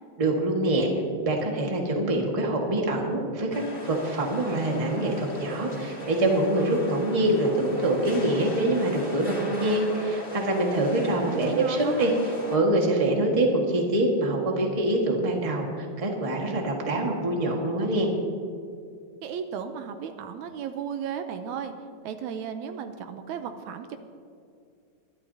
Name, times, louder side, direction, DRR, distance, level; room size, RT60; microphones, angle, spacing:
voice 1, 0.2-0.9 1.2-18.1, right 1 dB, 20° right, 0 dB, 1.0 m, -25 dB
sound 1, 3.5-12.6, left 1 dB, 25° left, 1.4 m, -37 dB
voice 2, 11.3-12.1 19.2-21.7 22.0-24.0, right 7 dB, 80° right, 7 dB, 2.0 m, -35 dB
23.0 x 12.0 x 2.8 m, 2.3 s
omnidirectional pair, 3.5 m